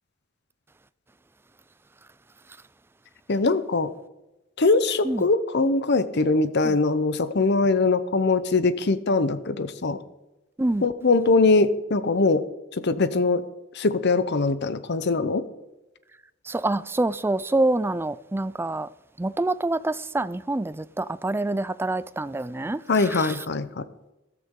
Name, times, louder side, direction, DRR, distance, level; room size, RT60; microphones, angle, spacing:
voice 1, 3.3-3.9 4.6-10.0 10.8-12.4 12.8-13.4 13.8-15.4 22.9-23.8, left 3 dB, 55° left, 0.8 m, -22 dB
voice 2, 16.5-18.9 19.2-23.4, right 2 dB, 10° right, 0.3 m, -26 dB
14.5 x 13.5 x 3.8 m
head